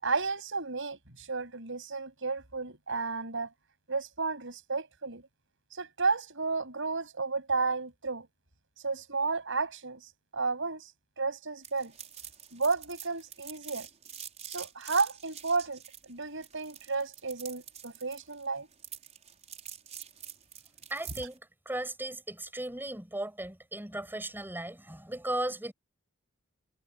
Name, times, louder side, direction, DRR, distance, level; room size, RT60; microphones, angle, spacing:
voice 1, 0.0-3.5 3.9-5.2 5.7-8.3 8.8-10.0 10.3-10.9 11.2-11.9 12.5-13.9 14.5-18.7, right 4 dB, 60° right, 7.8 m, -32 dB
sound 1, 11.6-21.3, right 9 dB, 35° right, 5.3 m, -46 dB
voice 2, 20.9-21.4 21.7-25.7, right 1 dB, 10° right, 7.2 m, -36 dB
head